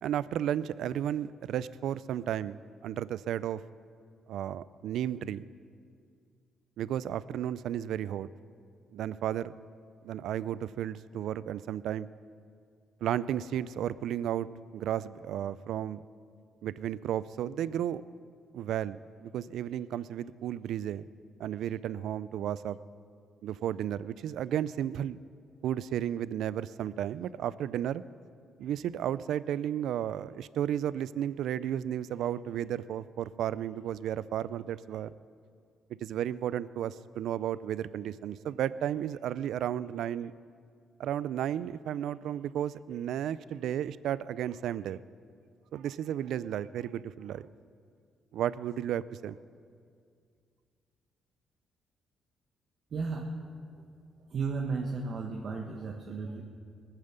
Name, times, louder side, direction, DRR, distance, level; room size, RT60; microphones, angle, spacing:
voice 1, 0.0-3.6 4.3-5.5 6.8-8.3 8.9-9.6 10.0-12.1 13.0-14.5 14.7-16.0 16.6-18.0 18.5-21.0 21.4-22.8 23.4-25.2 25.6-28.0 28.6-35.1 36.0-40.3 41.0-45.0 45.7-47.4 48.3-49.4, right 10 dB, 80° right, 18 dB, 0.4 m, -33 dB
voice 2, 52.9-53.8 54.3-56.4, right 4 dB, 55° right, 1 dB, 1.2 m, -34 dB
20.5 x 9.1 x 6.7 m, 2.2 s
cardioid pair, 90°, 0 cm